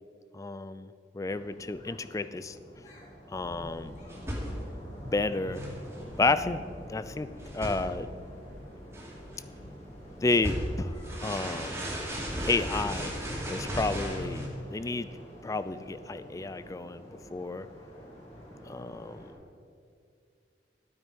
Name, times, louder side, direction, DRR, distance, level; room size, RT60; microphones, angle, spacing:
voice 1, 0.3-2.6 3.3-4.0 5.1-5.6 6.2-6.6 6.9-7.3 7.5-8.1 10.2-11.8 12.4-13.1 13.4-15.1 15.4-17.7 18.7-19.2, left 3 dB, 20° left, 13 dB, 0.3 m, -31 dB
sound 1, 1.2-19.3, equal, 40° left, 2.5 m, -49 dB
sound 2, 3.3-14.5, equal, 15° right, 2.2 m, -37 dB
12.0 x 8.8 x 5.3 m, 2.3 s
head